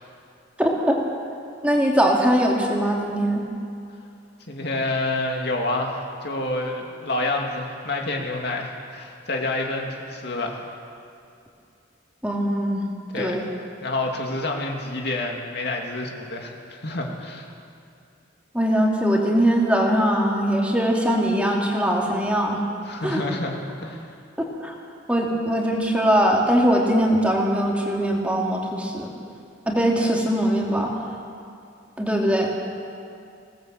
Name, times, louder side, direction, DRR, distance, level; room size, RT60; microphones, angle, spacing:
voice 1, 0.6-1.0 1.6-3.4 12.2-12.9 13.2-13.4 18.5-22.6 23.0-23.2 24.4-24.7 25.1-29.1 29.7-30.9 32.0-32.6, equal, 5° right, -1 dB, 2.5 m, -21 dB
voice 2, 4.5-10.6 13.1-13.6 13.8-17.5 22.8-23.6 23.8-24.0, left 2 dB, 60° left, 1 dB, 2.5 m, -28 dB
21.0 x 18.5 x 7.8 m, 2.5 s
head